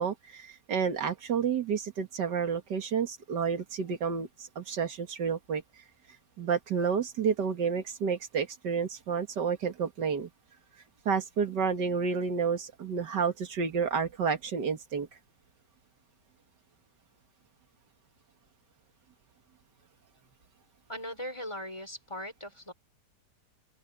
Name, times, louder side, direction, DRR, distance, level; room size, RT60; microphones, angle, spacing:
voice 1, 0.0-5.6 6.4-10.3 11.1-15.1, right 6 dB, 85° right, 2.3 m, -30 dB
voice 2, 20.9-22.7, equal, 15° left, 5.3 m, -39 dB
open air
omnidirectional pair, 1.8 m